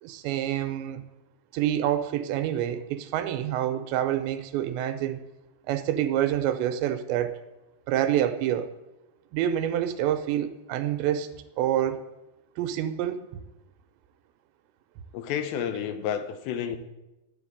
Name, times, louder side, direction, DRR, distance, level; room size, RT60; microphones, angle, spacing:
voice 1, 0.0-1.0 1.5-5.2 5.7-7.4 7.9-8.7 9.3-11.3 11.6-12.0 12.6-13.3, right 11 dB, 85° right, 3.0 m, -27 dB
voice 2, 15.1-16.8, left 8 dB, 80° left, 3.0 m, -30 dB
12.0 x 7.2 x 8.7 m
omnidirectional pair, 5.2 m